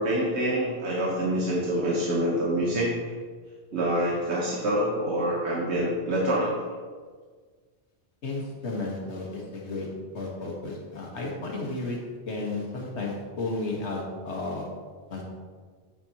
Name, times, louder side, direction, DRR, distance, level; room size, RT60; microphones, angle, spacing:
voice 1, 0.0-2.9 3.7-6.7, right 1 dB, 80° right, -4 dB, 1.4 m, -26 dB
voice 2, 8.2-9.9 10.1-12.0 12.3-14.7 15.1-15.2, left 2 dB, 85° left, -1 dB, 1.7 m, -33 dB
8.2 x 7.4 x 2.9 m, 1.5 s
omnidirectional pair, 1.1 m